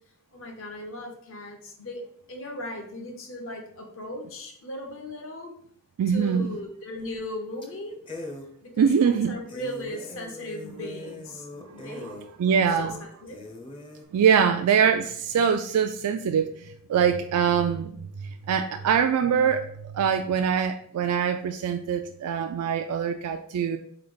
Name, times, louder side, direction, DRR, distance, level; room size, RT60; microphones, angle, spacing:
voice 1, 0.3-5.5 6.1-8.0 8.6-11.5 11.7-12.1 12.7-13.4, left 1 dB, 60° left, 1.0 m, -37 dB
voice 2, 6.0-6.5 8.8-9.3 11.7-13.0 14.1-17.9 18.5-23.8, right 7 dB, 85° right, 0.3 m, -23 dB
sound 1, 7.0-7.3 7.6-7.7 8.1-8.5 9.0-9.1 9.5-12.3 12.8-12.9 13.3-14.0, left 2 dB, 20° left, 0.6 m, -41 dB
4.2 x 3.3 x 3.8 m
head